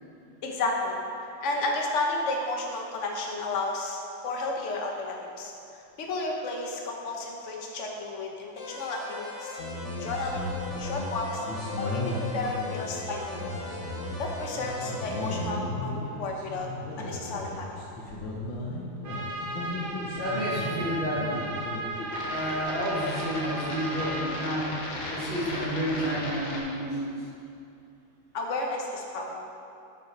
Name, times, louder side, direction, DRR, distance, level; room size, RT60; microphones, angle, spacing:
voice 1, 0.4-1.0 1.4-5.5 6.0-9.6 10.0-11.4 11.8-13.5 14.2-16.7 17.0-17.7 28.3-29.4, left 2 dB, 45° left, 0 dB, 1.2 m, -32 dB
sound 1, 8.6-15.4, left 2 dB, 20° left, 1.5 m, -40 dB
sound 2, 9.6-26.6, left 1 dB, 75° left, 2.0 m, -36 dB
Trumpet, 19.0-24.4, right 2 dB, 75° right, 2.1 m, -35 dB
voice 2, 20.1-21.7 22.2-24.7 25.1-27.1, equal, 30° right, -14 dB, 2.2 m, -30 dB
11.5 x 5.8 x 4.6 m, 2.6 s
omnidirectional pair, 2.1 m